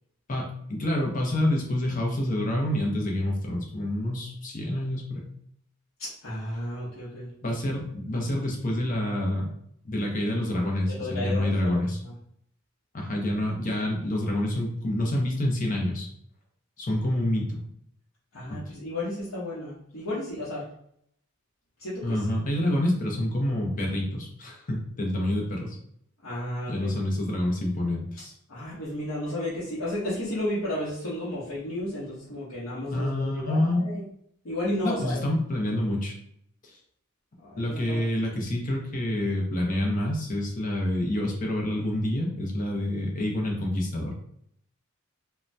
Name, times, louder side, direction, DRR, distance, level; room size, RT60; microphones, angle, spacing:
voice 1, 0.3-5.3 7.4-9.5 9.8-12.0 12.9-16.1 16.8-17.6 18.5-18.6 22.0-25.8 26.7-28.3 32.9-33.8 34.8-36.2 36.6-36.8 37.6-44.1, left 1 dB, 40° left, 0 dB, 0.6 m, -27 dB
voice 2, 6.0-7.3 10.9-12.1 18.3-20.6 21.8-22.2 26.2-26.9 28.5-34.1 34.4-35.2 37.4-38.0, left 1 dB, 85° left, -9 dB, 0.8 m, -33 dB
2.6 x 2.1 x 3.2 m, 0.69 s
head